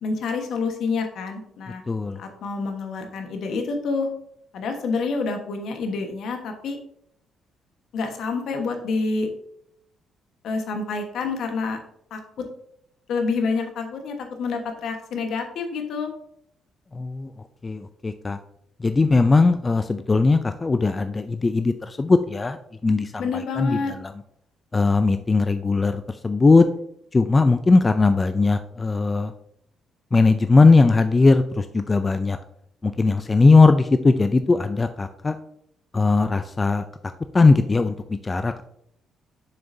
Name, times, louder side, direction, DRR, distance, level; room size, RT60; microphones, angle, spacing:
voice 1, 0.0-1.8 2.2-4.1 4.5-6.8 7.9-9.3 10.4-11.8 12.1-12.2 13.1-16.1 23.2-23.9, left 4 dB, 70° left, 4 dB, 1.2 m, -27 dB
voice 2, 1.9-2.2 16.9-17.3 17.6-18.4 18.8-22.6 22.8-24.1 24.7-26.7 27.1-29.3 30.1-32.4 32.8-35.4 35.9-36.9 37.3-37.9 38.2-38.6, left 3 dB, 25° left, 9 dB, 0.3 m, -19 dB
7.0 x 6.6 x 2.7 m, 0.73 s
cardioid pair, 100°, 0 cm